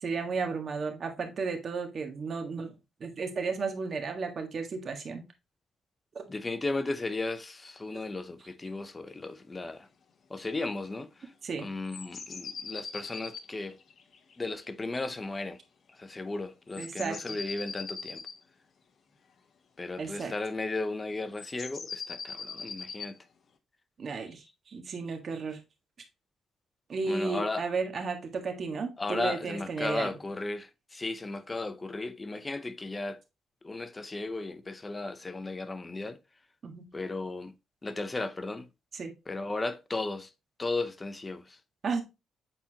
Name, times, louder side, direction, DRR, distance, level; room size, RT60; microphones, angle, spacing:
voice 1, 0.0-2.7 3.0-5.2 6.1-6.2 11.4-11.7 16.8-17.2 20.0-20.3 24.0-25.6 26.9-30.1 36.6-36.9 38.9-39.1 41.8-42.0, right 4 dB, 45° right, 1.6 m, -33 dB
voice 2, 6.3-9.9 10.3-11.3 11.6-13.8 14.4-15.6 15.9-18.2 19.8-23.2 27.0-27.6 29.0-33.2 33.6-36.2 36.9-37.5 37.8-38.7 39.3-40.3 40.6-41.6, left 2 dB, 25° left, 0.7 m, -35 dB
sound 1, 11.9-14.7 16.7-18.4 21.3-23.1, left 5 dB, 50° left, 0.9 m, -41 dB
8.1 x 4.2 x 2.9 m
cardioid pair, 90°, 0 cm